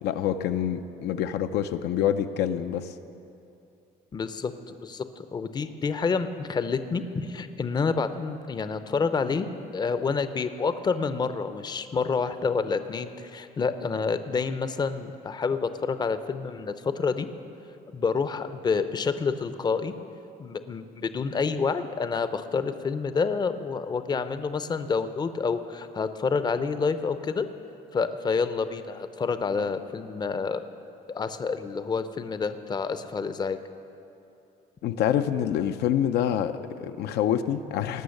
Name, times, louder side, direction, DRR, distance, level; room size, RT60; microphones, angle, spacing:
voice 1, 0.0-2.9 34.8-38.0, left 10 dB, 75° left, 9 dB, 0.5 m, -26 dB
voice 2, 4.1-9.5 9.7-17.3 17.9-19.9 20.4-27.5 27.9-30.6 31.1-33.6, left 5 dB, 25° left, 11 dB, 0.5 m, -28 dB
18.5 x 6.3 x 6.5 m, 2.7 s
cardioid pair, 110°, 17 cm